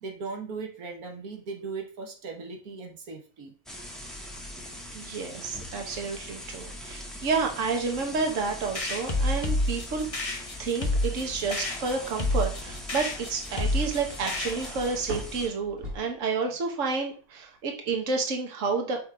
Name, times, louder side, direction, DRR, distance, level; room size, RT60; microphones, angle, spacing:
voice 1, 0.0-3.5, right 4 dB, 80° right, 4 dB, 1.5 m, -38 dB
sound 1, 3.7-15.5, equal, ahead, 1.1 m, -42 dB
voice 2, 4.9-10.1 10.6-19.0, right 4 dB, 60° right, 3 dB, 1.5 m, -30 dB
sound 2, 8.8-14.9, left 1 dB, 25° left, 1.0 m, -29 dB
sound 3, 12.7-16.8 17.1-17.7, equal, 40° right, 2.3 m, -43 dB
6.7 x 3.6 x 4.6 m, 0.40 s
omnidirectional pair, 1.5 m